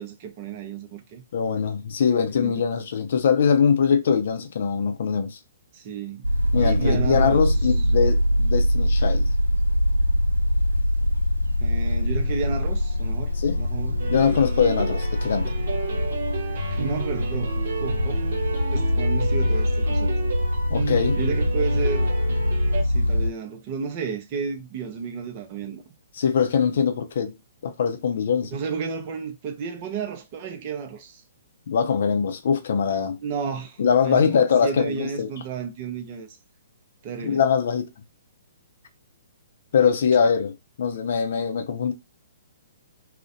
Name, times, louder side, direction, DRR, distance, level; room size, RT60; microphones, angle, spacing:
voice 1, 0.0-1.2 2.4-2.5 5.7-6.3 6.6-7.5 11.6-14.0 16.7-18.2 18.7-20.1 21.2-22.1 22.8-25.8 28.5-31.2 33.2-36.3 37.0-37.4, right 6 dB, 35° right, 0.6 m, -32 dB
voice 2, 1.3-5.4 6.5-9.3 13.4-13.6 14.1-15.5 20.7-21.2 26.1-27.4 27.6-28.6 31.7-33.2 33.8-35.3 37.2-37.9 39.7-41.9, left 6 dB, 55° left, 0.5 m, -22 dB
sound 1, 6.2-23.3, left 1 dB, 85° right, 0.4 m, -23 dB
sound 2, 14.0-22.8, right 5 dB, 55° right, 1.0 m, -32 dB
2.4 x 2.1 x 2.6 m
figure-of-eight pair, 120°, 0 cm